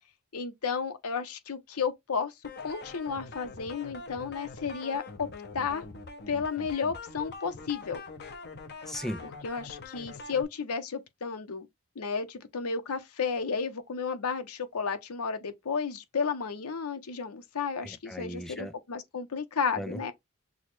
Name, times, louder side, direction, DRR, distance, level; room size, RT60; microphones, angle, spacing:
voice 1, 0.3-2.3 2.6-5.3 5.5-5.8 6.3-8.0 9.4-11.7 12.0-20.1, left 5 dB, 90° left, 0.7 m, -32 dB
sound 1, 2.4-10.4, left 3 dB, 50° left, 0.9 m, -44 dB
voice 2, 8.9-9.2 17.8-18.7 19.8-20.1, equal, ahead, 0.4 m, -37 dB
6.1 x 2.1 x 3.1 m
head